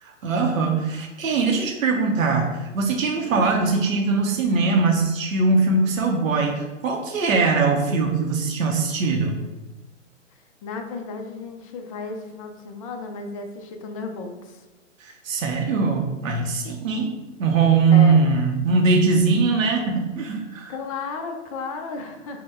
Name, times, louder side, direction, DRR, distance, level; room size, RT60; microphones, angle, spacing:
voice 1, 0.0-9.4 15.0-20.7, right 4 dB, 85° right, 2 dB, 0.7 m, -21 dB
voice 2, 10.6-14.6 17.9-18.2 20.7-22.4, left 4 dB, 30° left, 4 dB, 0.4 m, -34 dB
4.4 x 2.1 x 3.5 m, 1.1 s
hypercardioid pair, 125°, 39 cm